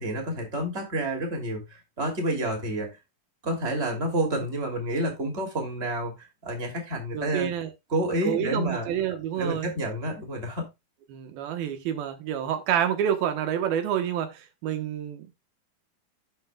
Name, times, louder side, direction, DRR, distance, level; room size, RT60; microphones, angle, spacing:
voice 1, 0.0-3.0 3.4-7.5 7.9-8.9 9.4-10.7, right 1 dB, 20° right, 2.5 m, -29 dB
voice 2, 7.1-7.7 8.2-9.7 11.1-15.4, right 9 dB, 85° right, 3.0 m, -28 dB
16.0 x 5.7 x 2.3 m
omnidirectional pair, 4.1 m